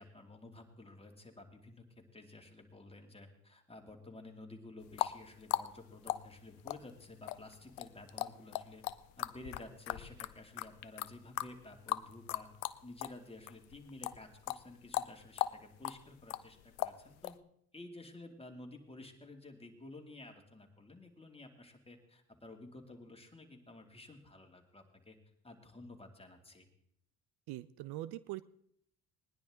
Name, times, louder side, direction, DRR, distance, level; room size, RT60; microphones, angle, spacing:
voice 1, 0.0-8.8 9.2-12.5 12.8-17.3 17.7-25.2 25.4-26.7, left 2 dB, 15° left, 3 dB, 2.5 m, -52 dB
sound 1, 4.8-13.2 13.5-17.4, left 16 dB, 90° left, 0.5 m, -38 dB
voice 2, 27.5-28.4, right 15 dB, 70° right, 17 dB, 0.6 m, -42 dB
19.5 x 10.5 x 3.7 m, 0.70 s
hypercardioid pair, 55°, 41 cm